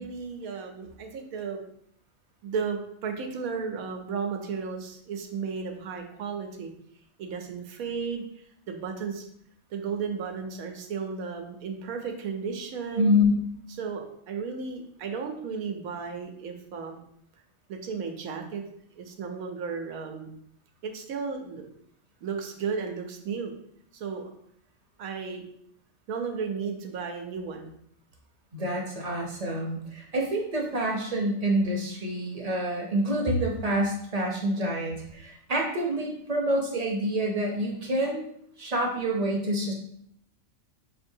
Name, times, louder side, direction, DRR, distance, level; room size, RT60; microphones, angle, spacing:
voice 1, 0.0-1.6 2.4-6.7 7.2-9.3 9.7-13.1 13.8-17.0 17.7-18.6 19.0-20.3 20.8-21.6 22.2-23.5 23.9-24.3 25.0-25.5 26.1-27.7, right 5 dB, 85° right, 3 dB, 1.1 m, -34 dB
voice 2, 13.0-13.5 28.5-38.3 38.6-39.7, equal, 35° right, 0 dB, 0.7 m, -27 dB
5.2 x 3.1 x 2.7 m, 0.71 s
omnidirectional pair, 1.5 m